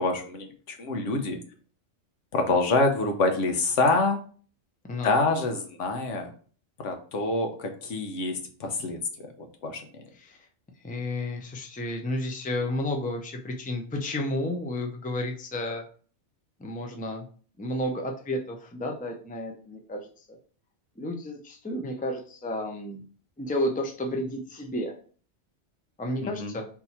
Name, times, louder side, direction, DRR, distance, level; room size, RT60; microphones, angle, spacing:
voice 1, 0.0-1.4 2.3-4.2 5.0-6.3 6.8-10.0 26.2-26.6, left 3 dB, 85° left, 5 dB, 1.2 m, -26 dB
voice 2, 10.8-15.8 16.6-17.2 17.6-20.4 21.0-23.0 23.4-24.9 26.0-26.6, left 1 dB, 10° left, 3 dB, 0.4 m, -32 dB
4.1 x 2.8 x 4.2 m, 0.43 s
omnidirectional pair, 1.2 m